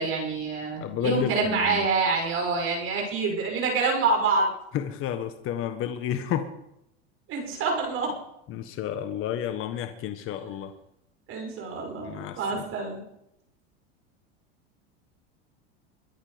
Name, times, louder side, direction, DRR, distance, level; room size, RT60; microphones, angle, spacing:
voice 1, 0.0-4.5 7.3-8.1 11.3-13.0, right 4 dB, 45° right, 1 dB, 6.4 m, -26 dB
voice 2, 0.8-1.9 4.7-6.5 8.5-10.7 12.0-12.7, left 9 dB, 45° left, 8 dB, 1.5 m, -31 dB
23.0 x 10.0 x 5.2 m, 0.80 s
supercardioid pair, 115°, 31 cm